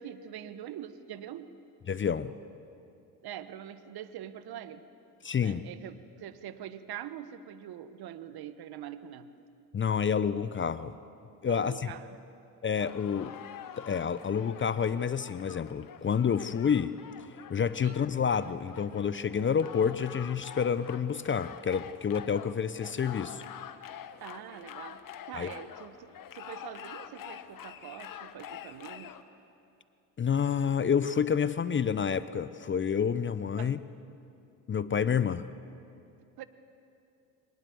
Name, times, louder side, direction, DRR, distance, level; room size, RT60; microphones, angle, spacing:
voice 1, 0.0-1.5 3.2-4.9 5.4-9.3 11.5-12.2 17.8-18.0 24.2-29.1 33.6-33.8 36.4-36.5, right 10 dB, 55° right, 12 dB, 1.4 m, -44 dB
voice 2, 1.9-2.3 5.2-5.6 9.7-10.9 11.4-11.9 12.6-13.3 13.8-16.9 17.5-23.4 25.3-25.5 30.2-33.8 34.7-35.5, left 7 dB, 25° left, 15 dB, 0.7 m, -29 dB
sound 1, 12.8-29.2, left 9 dB, 45° left, 1.3 m, -46 dB
24.5 x 19.0 x 7.8 m, 2.6 s
hypercardioid pair, 65°, 46 cm